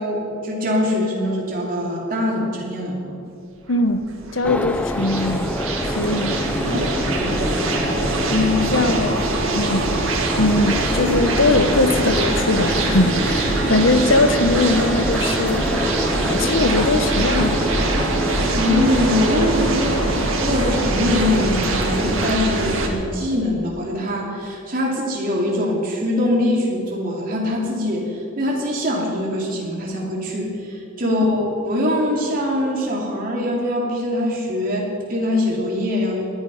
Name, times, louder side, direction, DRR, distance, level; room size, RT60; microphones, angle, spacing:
voice 1, 0.0-3.2 6.6-7.7 18.5-36.3, left 1 dB, 40° right, -3 dB, 3.2 m, -23 dB
voice 2, 3.7-4.0 4.3-5.5 5.9-6.9 8.3-9.3 9.5-10.1 10.4-15.6 16.2-17.7 31.0-31.2, left 2 dB, 65° left, 10 dB, 0.9 m, -21 dB
sound 1, 3.8-22.9, right 2 dB, 80° right, 2.0 m, -23 dB
sound 2, 4.4-22.4, left 1 dB, 5° left, 0.5 m, -27 dB
19.0 x 11.0 x 5.6 m, 2.8 s
head